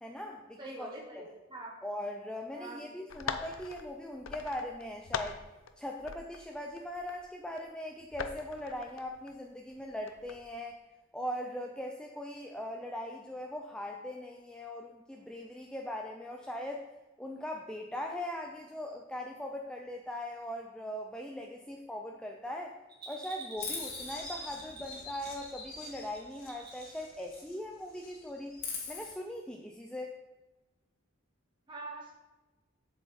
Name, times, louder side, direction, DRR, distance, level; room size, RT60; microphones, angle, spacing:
voice 1, 0.0-0.9 1.8-5.4 5.8-10.8 11.1-16.9 17.2-22.7 23.1-28.6 28.9-30.1, left 1 dB, 5° left, 1 dB, 0.5 m, -40 dB
voice 2, 0.6-1.7 2.5-2.9 31.7-32.1, right 2 dB, 25° right, -3 dB, 2.1 m, -44 dB
sound 1, 3.1-5.7 6.0-7.6 8.0-9.3 9.7-10.5, left 6 dB, 80° left, 0.6 m, -42 dB
Bell, 22.9-27.0 27.3-27.4, right 3 dB, 55° right, 2.1 m, -47 dB
Chirp tweet, 23.6-27.6 27.9-29.1, left 4 dB, 50° left, 2.0 m, -43 dB
7.7 x 7.0 x 4.3 m, 1.1 s
head